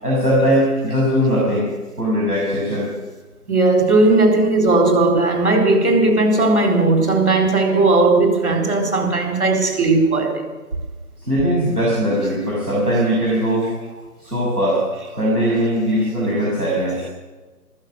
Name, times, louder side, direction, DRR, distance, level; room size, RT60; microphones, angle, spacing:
voice 1, 0.0-1.7 2.0-2.9 11.2-13.7 14.2-14.8 15.2-17.0, equal, 10° left, 4.8 m, -19 dB
voice 2, 3.5-10.4, right 2 dB, 45° right, 4.2 m, -16 dB
14.5 x 14.0 x 6.5 m
figure-of-eight pair, 170°, 46 cm